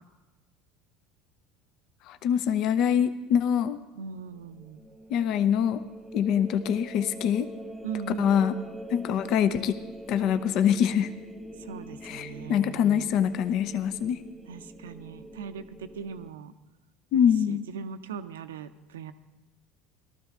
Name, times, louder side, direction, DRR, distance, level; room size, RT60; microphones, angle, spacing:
voice 1, 2.1-3.8 5.1-5.8 6.1-7.5 8.2-8.5 8.9-9.8 10.1-11.1 12.0-14.2 17.1-17.7, left 9 dB, 60° left, 12 dB, 0.6 m, -24 dB
voice 2, 4.0-4.8 7.8-8.8 11.6-13.1 14.5-16.5 17.1-19.1, right 6 dB, 85° right, 11 dB, 0.6 m, -40 dB
sound 1, 4.3-16.3, equal, 5° right, 1.0 m, -44 dB
18.0 x 12.5 x 3.6 m, 1.1 s
hypercardioid pair, 80°, 0 cm